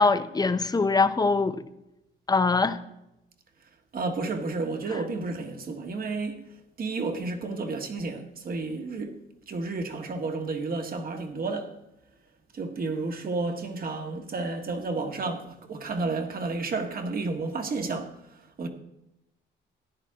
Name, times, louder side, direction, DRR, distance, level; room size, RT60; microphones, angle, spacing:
voice 1, 0.0-1.6 2.3-2.8, left 4 dB, 20° left, 0.7 m, -22 dB
voice 2, 3.9-6.4 6.8-9.2 9.5-11.7 12.5-18.2 18.6-18.7, right 3 dB, 45° right, 1.7 m, -31 dB
14.0 x 10.0 x 3.7 m
cardioid pair, 90°, 20 cm